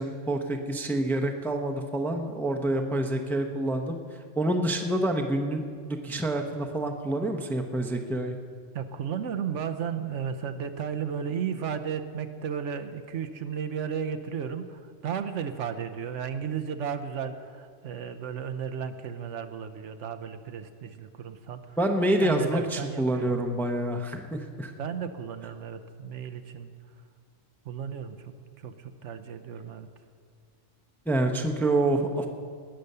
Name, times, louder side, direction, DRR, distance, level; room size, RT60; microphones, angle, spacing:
voice 1, 0.0-4.0 4.4-8.4 21.8-24.7 31.1-32.3, right 1 dB, ahead, 4 dB, 0.6 m, -27 dB
voice 2, 8.7-21.8 22.2-23.3 24.8-26.7 27.6-29.9, right 7 dB, 75° right, 9 dB, 1.0 m, -34 dB
19.0 x 6.9 x 6.7 m, 2.1 s
omnidirectional pair, 1.3 m